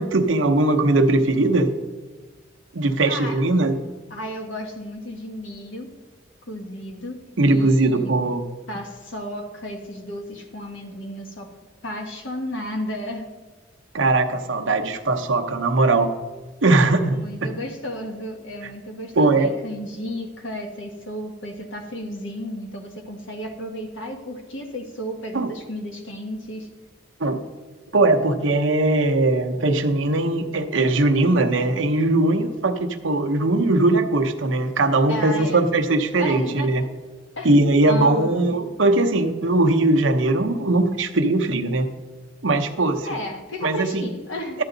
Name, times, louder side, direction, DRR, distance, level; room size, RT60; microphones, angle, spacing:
voice 1, 0.0-1.7 2.7-3.7 7.4-8.4 13.9-16.1 16.6-17.2 17.4-17.5 19.2-19.5 25.3-25.5 27.2-27.4 27.9-36.9 37.4-41.9 42.4-43.1 43.6-44.0, right 2 dB, 75° right, 5 dB, 0.8 m, -20 dB
voice 2, 3.0-3.4 4.1-5.9 6.5-7.2 7.5-8.1 8.7-11.5 11.8-13.3 17.1-26.7 35.1-35.6 36.2-36.9 37.4-37.5 37.9-38.5 43.0-44.6, equal, 75° left, 3 dB, 1.4 m, -33 dB
12.0 x 9.0 x 3.9 m, 1.3 s
head